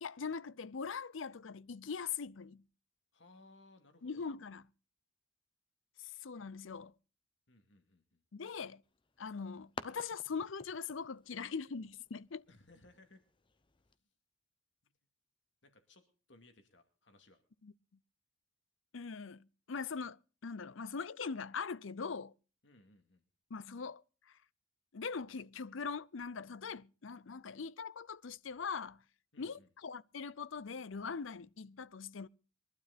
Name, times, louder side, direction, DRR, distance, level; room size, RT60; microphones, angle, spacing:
voice 1, 0.0-2.6 4.0-4.6 6.0-6.9 8.3-8.8 9.2-12.4 17.6-17.7 18.9-22.3 23.5-24.0 24.9-29.0 29.4-32.3, left 5 dB, 85° left, 0.6 m, -42 dB
voice 2, 3.1-4.3 7.5-8.2 12.5-13.2 14.8-14.9 15.6-16.0 16.3-17.4 22.6-23.2 29.3-29.7, left 2 dB, 70° left, 2.4 m, -62 dB
sound 1, 8.8-14.0, left 4 dB, 25° left, 0.8 m, -53 dB
22.0 x 12.0 x 4.1 m
head